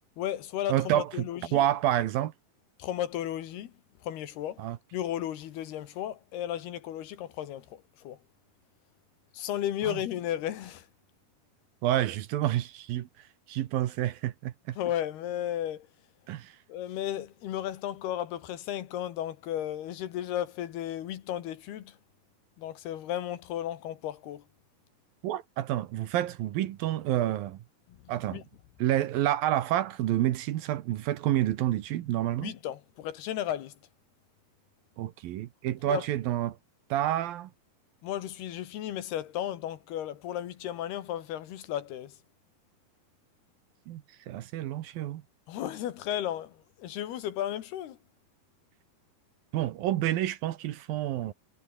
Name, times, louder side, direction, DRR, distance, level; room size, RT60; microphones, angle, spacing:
voice 1, 0.2-1.6 2.8-3.7 4.0-4.6 4.9-8.2 9.3-10.9 14.8-15.9 16.7-22.0 22.6-24.4 28.3-28.4 32.4-33.8 35.9-36.0 38.0-42.2 45.5-48.0, left 11 dB, 75° left, 3.5 m, -34 dB
voice 2, 0.7-2.3 4.6-4.8 9.8-10.0 11.8-13.1 13.5-14.8 16.3-16.6 25.2-27.6 28.1-28.4 28.8-32.5 35.0-36.6 36.9-37.5 43.9-45.2 49.5-51.3, right 13 dB, 70° right, 2.6 m, -29 dB
omnidirectional pair, 4.8 m